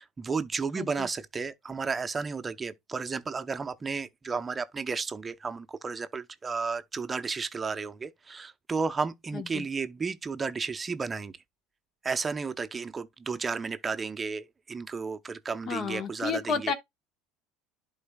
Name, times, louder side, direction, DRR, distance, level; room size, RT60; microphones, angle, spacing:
voice 1, 0.0-11.3 12.0-16.7, right 4 dB, 25° right, 0.7 m, -33 dB
voice 2, 0.8-1.1 9.3-9.6 15.7-16.7, left 6 dB, 45° left, 1.4 m, -31 dB
11.5 x 4.0 x 2.2 m
supercardioid pair, 100°, 0 cm